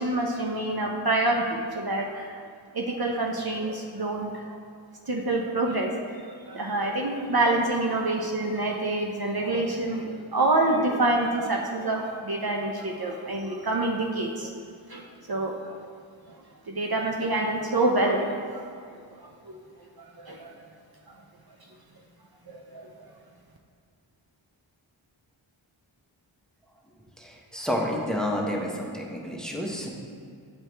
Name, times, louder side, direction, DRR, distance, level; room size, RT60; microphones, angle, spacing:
voice 1, 0.0-2.3 2.7-4.6 5.1-5.9 6.2-14.5 14.9-15.0 15.3-15.7 16.7-18.6 19.5-19.6 20.2-20.5 22.5-22.9, right 2 dB, 50° right, 0 dB, 0.7 m, -27 dB
voice 2, 27.2-29.9, equal, ahead, -1 dB, 0.9 m, -30 dB
8.7 x 4.6 x 3.3 m, 2.2 s
wide cardioid pair, 40°, 49 cm